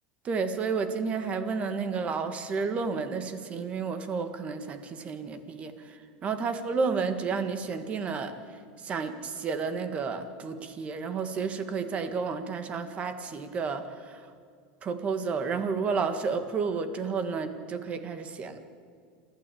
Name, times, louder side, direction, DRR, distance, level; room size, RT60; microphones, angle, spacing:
voice 1, 0.2-8.3 8.8-14.2 14.8-18.6, right 5 dB, 25° right, 9 dB, 1.7 m, -31 dB
28.0 x 12.5 x 8.6 m, 2.1 s
supercardioid pair, 155°, 5 cm